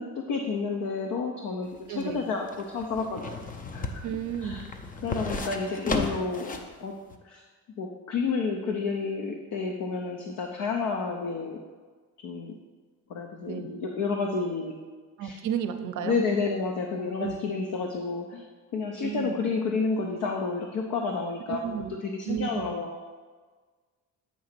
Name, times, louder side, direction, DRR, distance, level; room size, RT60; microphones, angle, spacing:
voice 1, 0.0-3.4 3.7-4.1 4.4-4.6 5.0-6.9 7.2-7.4 7.8-11.6 12.2-12.6 13.1-14.7 15.2-15.4 16.0-18.4 18.7-21.7 22.0-23.0, left 4 dB, 65° left, 3 dB, 0.7 m, -30 dB
sound 1, 1.6-6.7 7.1-7.2, left 3 dB, 25° left, 0.5 m, -34 dB
voice 2, 1.9-2.2 4.0-4.6 13.5-13.7 15.2-16.2 17.2-17.4 19.0-19.4 21.5-21.9 22.3-22.7, right 9 dB, 65° right, 8 dB, 0.6 m, -32 dB
8.3 x 2.9 x 5.9 m, 1.4 s
cardioid pair, 130°, 33 cm